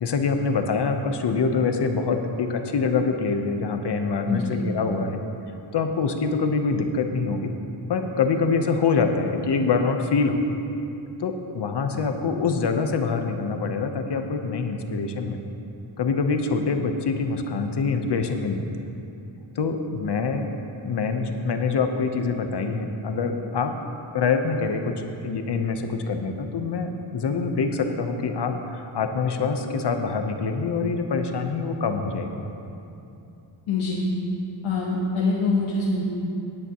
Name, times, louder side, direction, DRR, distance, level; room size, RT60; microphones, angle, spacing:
voice 1, 0.0-5.2 5.7-7.5 7.9-10.4 11.2-15.4 16.0-18.7 19.5-20.5 20.8-23.7 24.1-32.5, left 4 dB, 60° left, 5 dB, 1.1 m, -25 dB
voice 2, 4.3-4.6 33.7-34.0 34.6-36.0, left 3 dB, 85° left, -6 dB, 1.5 m, -24 dB
18.0 x 9.0 x 3.1 m, 2.8 s
cardioid pair, 80°, 47 cm